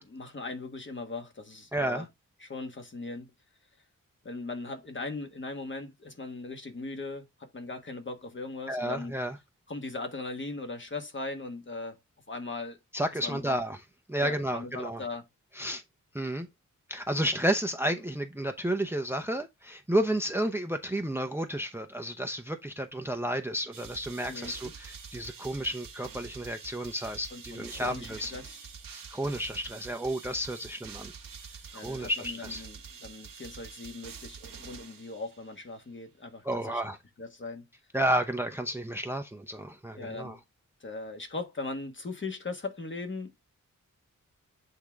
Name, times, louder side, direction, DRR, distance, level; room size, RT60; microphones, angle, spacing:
voice 1, 0.0-2.1 2.4-3.3 4.2-9.2 9.7-12.0 12.3-12.8 13.2-13.6 14.2-15.2 24.2-24.7 27.3-28.6 31.7-36.8 37.2-37.6 40.0-40.4 40.8-43.3, left 3 dB, 35° left, 1.3 m, -39 dB
voice 2, 1.7-2.1 8.7-9.4 12.9-13.8 14.1-15.0 15.6-15.8 16.1-16.5 16.9-28.3 28.9-31.1 31.8-32.6 36.4-37.0 37.9-40.4, right 1 dB, 5° right, 0.6 m, -31 dB
sound 1, 23.7-35.6, right 6 dB, 90° right, 1.1 m, -46 dB
8.3 x 3.7 x 3.4 m
wide cardioid pair, 115°, 32 cm